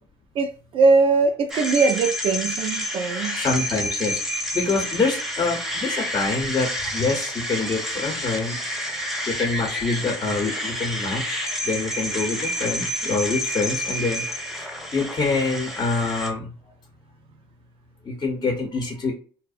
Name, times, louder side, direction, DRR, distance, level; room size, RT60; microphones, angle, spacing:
voice 1, 0.3-3.4, right 4 dB, 55° right, 0.5 m, -21 dB
sound 1, 1.5-16.3, equal, 5° right, 0.7 m, -29 dB
voice 2, 3.3-4.2 4.5-8.6 9.3-11.4 11.6-14.2 14.6-14.7 14.9-16.5 18.0-19.1, left 3 dB, 35° left, 0.8 m, -25 dB
2.5 x 2.0 x 2.4 m
supercardioid pair, 85°, 11 cm